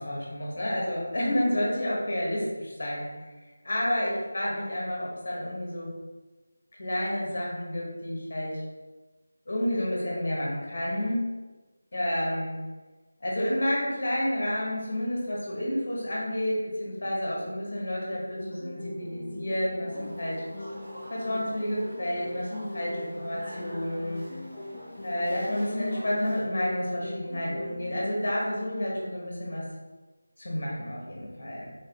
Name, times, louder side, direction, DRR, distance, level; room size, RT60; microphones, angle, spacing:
voice 1, 0.0-3.3 3.6-5.9 6.8-8.6 9.5-11.3 11.9-12.6 13.2-20.4 21.1-24.2 25.0-29.6 30.4-31.7, left 1 dB, 45° left, -4 dB, 1.1 m, -30 dB
sound 1, 18.3-28.3, left 1 dB, 20° left, 0.3 m, -41 dB
sound 2, 19.9-26.4, equal, 20° right, 0.7 m, -44 dB
3.5 x 3.2 x 2.8 m, 1.2 s
figure-of-eight pair, 180°, 0 cm